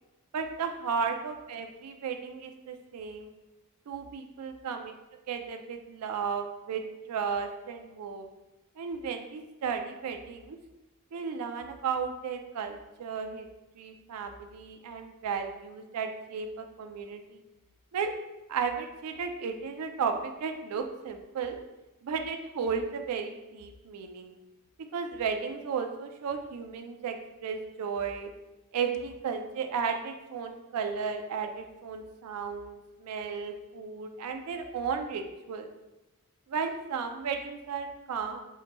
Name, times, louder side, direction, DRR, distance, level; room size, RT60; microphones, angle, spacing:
voice 1, 0.3-3.3 3.9-4.9 5.3-6.8 7.1-8.3 8.8-10.6 11.1-13.5 13.8-17.4 17.9-18.1 18.5-21.6 22.0-24.3 24.8-28.3 28.7-35.7 36.5-38.4, right 6 dB, 85° right, 5 dB, 0.4 m, -34 dB
5.4 x 2.1 x 3.0 m, 1.0 s
head